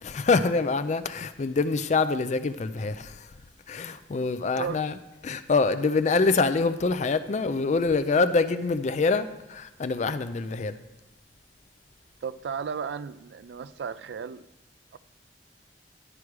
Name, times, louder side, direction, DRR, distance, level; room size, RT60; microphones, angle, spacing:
voice 1, 0.0-3.3 3.7-4.9 5.2-10.8, left 4 dB, 40° left, 0.4 m, -25 dB
voice 2, 4.5-4.9 12.2-14.5 14.9-15.0, right 6 dB, 75° right, 0.3 m, -34 dB
11.0 x 4.8 x 4.7 m
head